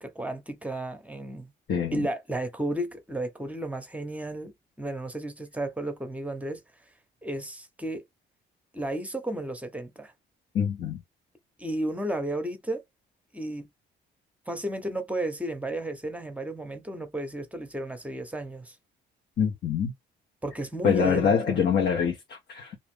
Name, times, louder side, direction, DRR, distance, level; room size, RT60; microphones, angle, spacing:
voice 1, 0.0-1.5 1.9-4.5 4.8-6.6 7.2-8.0 8.7-10.1 11.6-12.8 13.3-13.7 14.5-18.7 20.4-21.6, right 1 dB, 5° right, 0.8 m, -33 dB
voice 2, 1.7-2.1 10.5-11.0 19.4-19.9 20.8-22.8, left 7 dB, 60° left, 0.9 m, -25 dB
2.6 x 2.4 x 3.3 m
cardioid pair, 90°, 20 cm